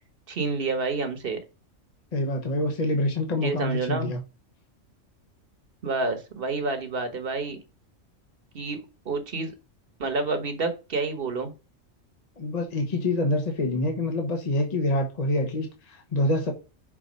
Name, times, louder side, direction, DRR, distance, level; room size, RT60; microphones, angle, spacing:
voice 1, 0.3-1.4 3.4-4.1 5.8-7.6 8.5-9.5 10.0-11.5, right 3 dB, 45° right, 1.4 m, -29 dB
voice 2, 2.1-4.2 12.4-16.5, left 1 dB, 35° left, 1.1 m, -26 dB
6.1 x 4.0 x 5.2 m
omnidirectional pair, 1.4 m